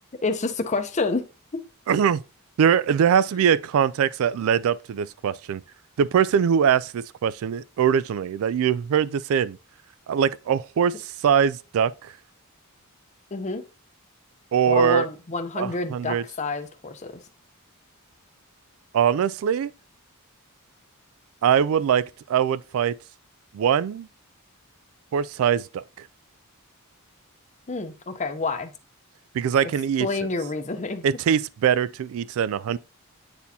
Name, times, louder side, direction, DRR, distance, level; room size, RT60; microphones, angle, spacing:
voice 1, 0.2-1.2 13.3-13.6 14.7-17.1 27.7-28.7 30.0-31.1, left 3 dB, 30° left, 0.7 m, -28 dB
voice 2, 1.9-2.2 2.6-5.6 6.0-9.6 10.1-12.1 14.5-15.1 15.6-16.2 18.9-19.7 21.4-23.0 23.5-24.1 25.1-26.1 29.3-30.3 31.0-32.8, right 8 dB, 65° right, 0.3 m, -22 dB
8.4 x 4.2 x 2.7 m
head